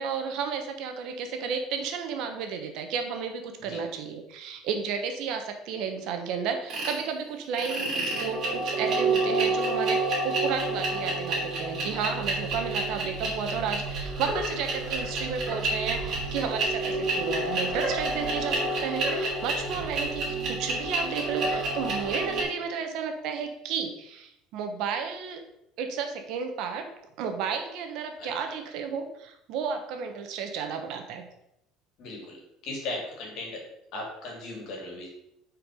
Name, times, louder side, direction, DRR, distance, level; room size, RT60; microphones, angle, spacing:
voice 1, 0.0-25.4 25.8-26.9 27.2-31.3, right 6 dB, 55° right, 5 dB, 1.1 m, -32 dB
sound 1, 6.7-7.0 7.5-22.4, right 2 dB, 30° right, 3.1 m, -29 dB
voice 2, 32.0-32.4 32.6-33.6 33.9-35.1, left 2 dB, 45° left, 0 dB, 2.7 m, -37 dB
8.5 x 4.7 x 5.3 m, 0.80 s
cardioid pair, 180°, 0 cm